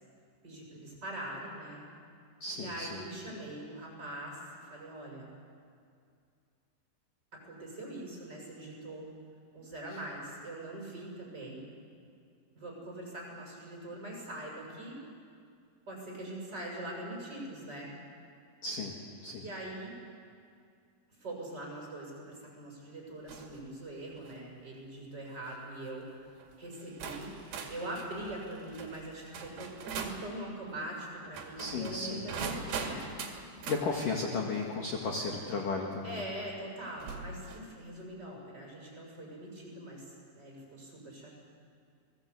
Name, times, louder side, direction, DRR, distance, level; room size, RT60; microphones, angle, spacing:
voice 1, 0.4-1.8 2.5-5.3 7.4-9.1 9.5-11.7 12.5-15.0 15.9-17.9 19.3-20.0 21.2-27.3 27.7-33.0 36.0-41.3, right 1 dB, 20° right, -3 dB, 6.8 m, -42 dB
voice 2, 2.4-3.0 18.6-19.4 31.6-32.4 33.7-36.2, left 3 dB, 55° left, -1 dB, 2.8 m, -34 dB
sound 1, 23.3-23.6 24.1-24.4 25.3-25.5 26.4-26.5 27.0-30.3 31.2-33.9 35.6-35.7 37.0-37.7, right 5 dB, 55° right, 3.8 m, -41 dB
30.0 x 20.5 x 8.2 m, 2.3 s
omnidirectional pair, 5.6 m